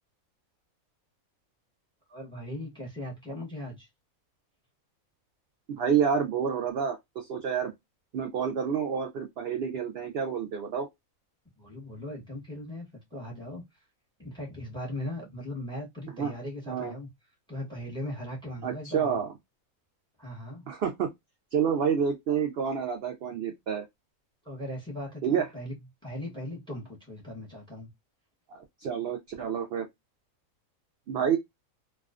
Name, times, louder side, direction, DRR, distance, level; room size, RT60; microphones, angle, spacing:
voice 1, 2.1-3.9 11.6-13.6 14.2-17.1 17.5-19.2 20.2-20.7 24.4-27.9, left 1 dB, 5° left, 0.8 m, -39 dB
voice 2, 5.7-7.7 8.1-10.9 16.2-16.3 16.7-16.9 18.6-19.3 20.7-21.1 21.5-23.9 25.2-25.5 28.5-29.9 31.1-31.4, right 7 dB, 70° right, 0.6 m, -28 dB
2.3 x 2.2 x 2.3 m
omnidirectional pair, 1.5 m